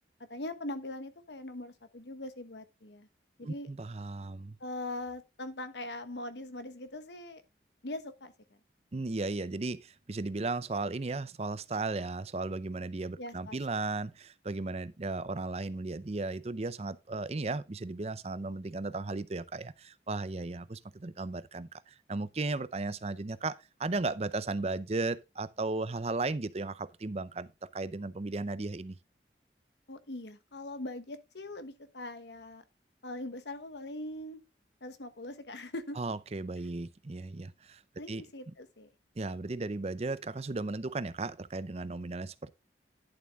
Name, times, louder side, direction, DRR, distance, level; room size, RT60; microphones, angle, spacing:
voice 1, 0.2-3.1 3.4-3.7 4.6-7.4 7.8-8.6 13.2-13.6 29.9-32.6 33.0-34.4 34.8-36.0 38.0-38.9, left 1 dB, 80° left, 1.3 m, -41 dB
voice 2, 3.4-4.6 8.9-29.0 36.0-37.8 38.1-38.2 39.2-42.5, right 3 dB, 35° right, 0.5 m, -35 dB
11.0 x 7.1 x 3.5 m
head